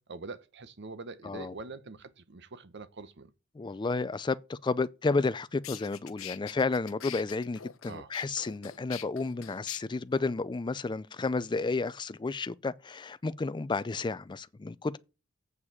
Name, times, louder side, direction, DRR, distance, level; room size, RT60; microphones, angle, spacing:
voice 1, 0.0-3.3 7.9-8.1, right 3 dB, 60° right, 0.9 m, -44 dB
voice 2, 3.6-15.0, left 3 dB, 20° left, 0.4 m, -31 dB
sound 1, 5.2-5.3 5.6-9.8, left 11 dB, 85° left, 0.8 m, -44 dB
8.2 x 4.7 x 7.2 m
head